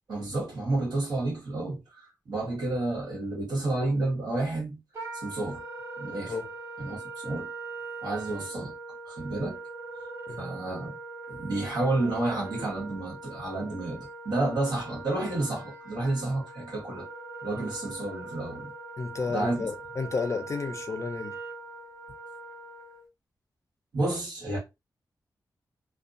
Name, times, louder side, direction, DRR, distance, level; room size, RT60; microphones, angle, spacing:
voice 1, 0.1-4.8 5.1-5.6 6.0-6.3 6.8-7.5 8.0-8.7 9.1-9.6 10.4-10.9 11.3-17.1 17.4-18.7 19.3-19.7 23.9-24.6, right 2 dB, 80° right, 1.2 m, -30 dB
Wind instrument woodwind instrument, 4.9-23.1, right 3 dB, 40° right, 0.9 m, -41 dB
voice 2, 19.0-21.4, left 4 dB, 45° left, 0.4 m, -32 dB
2.5 x 2.2 x 2.5 m
wide cardioid pair, 165°, 7 cm